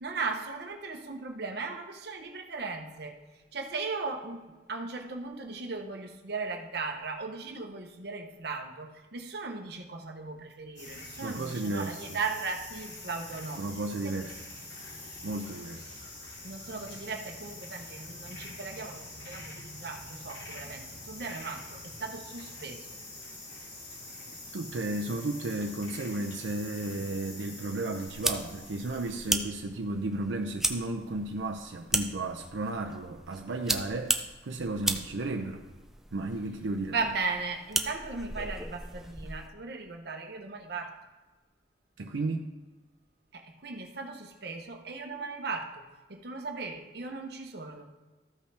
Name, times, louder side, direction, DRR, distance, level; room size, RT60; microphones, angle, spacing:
voice 1, 0.0-3.2 3.5-13.7 14.0-14.1 16.4-22.9 36.9-41.0 43.3-45.8 46.1-47.8, right 4 dB, 60° right, 4 dB, 0.9 m, -37 dB
sound 1, 10.8-29.4, left 2 dB, 70° left, 2.4 m, -45 dB
voice 2, 11.2-12.2 13.6-14.4 15.2-16.0 24.5-35.6 36.1-37.0 42.0-42.5, right 2 dB, 80° right, 2 dB, 0.6 m, -34 dB
sound 2, 28.1-39.5, right 1 dB, ahead, 0.4 m, -36 dB
14.0 x 5.4 x 3.4 m, 1.2 s
head